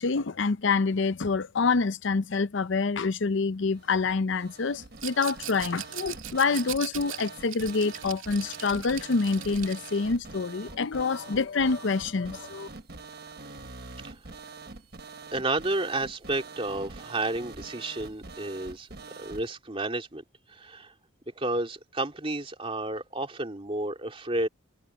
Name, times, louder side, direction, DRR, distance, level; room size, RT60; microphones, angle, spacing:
voice 1, 0.0-12.7, left 4 dB, 60° left, 0.6 m, -27 dB
sound 1, 3.6-19.5, right 3 dB, 50° right, 1.3 m, -45 dB
Rattle, 5.0-10.1, right 12 dB, 75° right, 2.3 m, -40 dB
voice 2, 15.3-18.9 19.2-20.2 20.5-20.9 21.4-24.5, right 2 dB, 25° right, 2.8 m, -31 dB
head